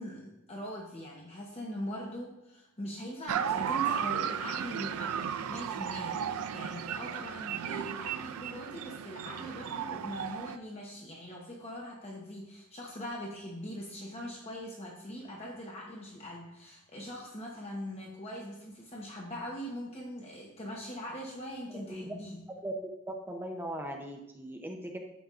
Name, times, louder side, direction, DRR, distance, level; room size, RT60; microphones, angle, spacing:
voice 1, 0.0-22.5, equal, 30° left, -1 dB, 0.9 m, -41 dB
sound 1, 3.3-10.6, right 8 dB, 85° right, 0.4 m, -34 dB
voice 2, 23.3-25.0, right 1 dB, 10° right, 2 dB, 0.6 m, -39 dB
10.0 x 7.0 x 2.4 m, 0.91 s
head